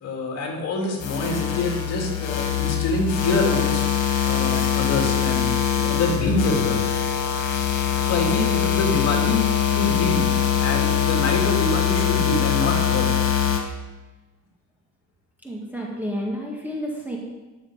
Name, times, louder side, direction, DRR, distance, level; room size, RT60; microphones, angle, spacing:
voice 1, 0.0-3.8 4.2-6.8 8.0-10.2 10.6-13.1, left 2 dB, 50° left, 0 dB, 2.8 m, -26 dB
sound 1, 1.0-13.6, left 8 dB, 75° left, 2.0 m, -22 dB
voice 2, 15.4-17.2, equal, 5° right, -3 dB, 1.8 m, -30 dB
12.0 x 6.6 x 5.0 m, 1.2 s
cardioid pair, 135°, 32 cm